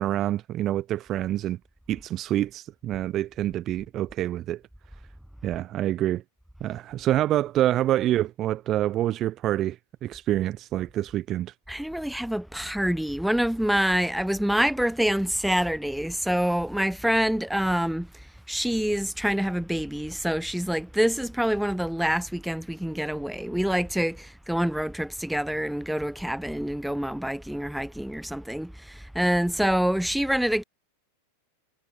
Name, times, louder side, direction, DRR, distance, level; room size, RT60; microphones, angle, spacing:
voice 1, 0.0-1.6 1.9-4.6 5.4-6.2 6.6-9.8 10.0-11.5, right 13 dB, 30° right, 0.9 m, -26 dB
voice 2, 11.7-18.1 18.5-30.6, equal, ahead, 1.5 m, -26 dB
figure-of-eight pair, 90°, 0 cm